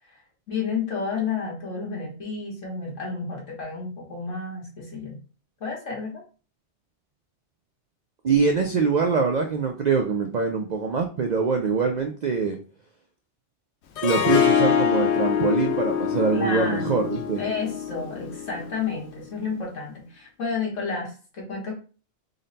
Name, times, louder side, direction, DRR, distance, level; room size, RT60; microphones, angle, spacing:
voice 1, 0.5-5.2 5.6-6.2 16.3-17.1 17.4-21.8, left 4 dB, 85° left, -2 dB, 1.7 m, -31 dB
voice 2, 8.2-12.6 14.0-17.4, right 5 dB, 65° right, 3 dB, 0.4 m, -24 dB
Harp, 14.0-19.0, left 8 dB, 70° left, 0.8 m, -24 dB
3.9 x 2.1 x 3.9 m, 0.37 s
omnidirectional pair, 1.2 m